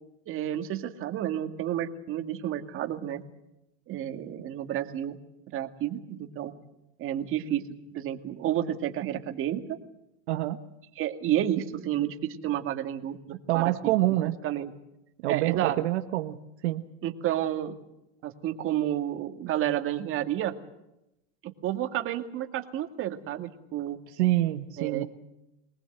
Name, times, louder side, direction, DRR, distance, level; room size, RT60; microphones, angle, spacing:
voice 1, 0.3-3.2 3.9-5.2 5.5-6.5 7.0-7.6 7.9-9.6 11.0-13.9 14.4-14.7 15.3-15.8 17.0-17.8 18.2-20.5 21.4-24.0 24.8-25.0, right 11 dB, 40° right, 6 dB, 2.1 m, -30 dB
voice 2, 10.3-10.6 13.5-14.4 15.2-16.4 16.6-16.8 24.2-25.0, right 16 dB, 75° right, 7 dB, 1.3 m, -26 dB
23.0 x 19.5 x 8.0 m, 0.88 s
supercardioid pair, 125°, 34 cm